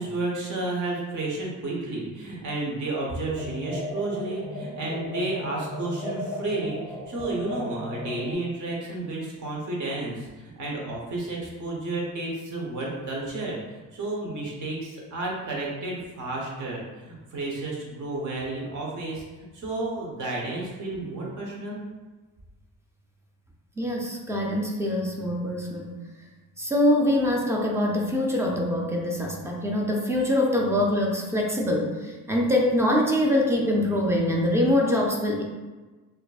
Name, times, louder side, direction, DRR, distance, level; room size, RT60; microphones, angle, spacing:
voice 1, 0.0-21.8, right 2 dB, 60° right, -3 dB, 1.0 m, -32 dB
sound 1, 3.3-8.3, left 1 dB, 40° right, 1.5 m, -35 dB
voice 2, 23.8-25.9 26.6-35.4, left 1 dB, 10° right, -1 dB, 0.4 m, -24 dB
4.4 x 2.6 x 2.4 m, 1.3 s
cardioid pair, 145°, 34 cm